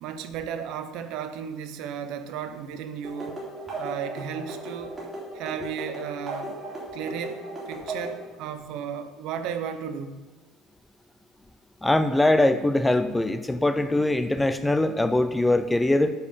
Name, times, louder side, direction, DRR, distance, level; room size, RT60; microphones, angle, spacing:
voice 1, 0.0-3.4 3.8-5.0 5.3-6.6 6.9-10.3, right 8 dB, 65° right, 10 dB, 0.8 m, -34 dB
sound 1, 3.0-8.2, right 2 dB, 15° right, 3.1 m, -36 dB
voice 2, 11.8-16.1, left 1 dB, 5° left, 10 dB, 0.4 m, -22 dB
9.5 x 4.6 x 7.1 m, 1.3 s
cardioid pair, 160°, 0 cm